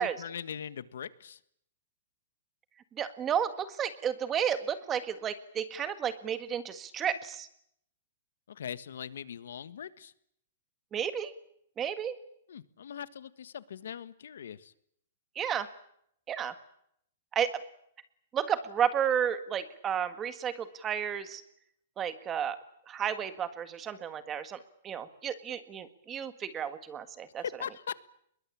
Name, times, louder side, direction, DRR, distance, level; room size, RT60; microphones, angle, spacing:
voice 1, 0.0-1.4 8.5-10.1 12.5-14.7 27.4-27.9, left 8 dB, 80° left, 15 dB, 1.6 m, -41 dB
voice 2, 3.0-7.5 10.9-11.3 11.8-12.1 15.3-15.7 16.3-16.5 17.3-17.5 18.3-21.4 22.0-22.6 22.9-24.6 24.8-27.4, right 8 dB, 15° right, 12 dB, 1.7 m, -32 dB
25.0 x 22.0 x 8.7 m, 0.70 s
hypercardioid pair, 170°, 0 cm